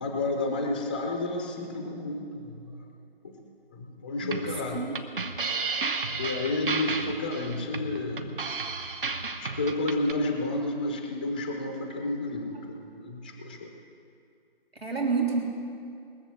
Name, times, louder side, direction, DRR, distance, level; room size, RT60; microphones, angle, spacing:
voice 1, 0.0-2.8 3.2-3.4 3.7-4.8 6.1-8.3 9.2-13.7, left 2 dB, 10° left, 3 dB, 0.5 m, -31 dB
sound 1, 4.2-10.1, right 4 dB, 60° right, 1.1 m, -32 dB
voice 2, 4.7-5.4 14.8-15.4, right 4 dB, 85° right, -1 dB, 3.1 m, -29 dB
20.5 x 7.1 x 7.5 m, 2.5 s
figure-of-eight pair, 150°, 30 cm